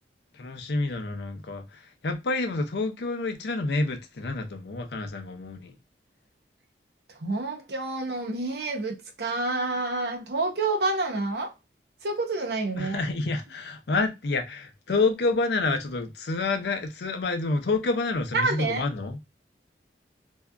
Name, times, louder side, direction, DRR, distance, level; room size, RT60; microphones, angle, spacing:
voice 1, 0.4-5.8 12.8-19.2, left 3 dB, 70° left, 0.5 m, -28 dB
voice 2, 7.2-11.5 12.0-13.0 18.3-18.8, right 3 dB, 65° right, 0.6 m, -28 dB
2.7 x 2.3 x 2.2 m
head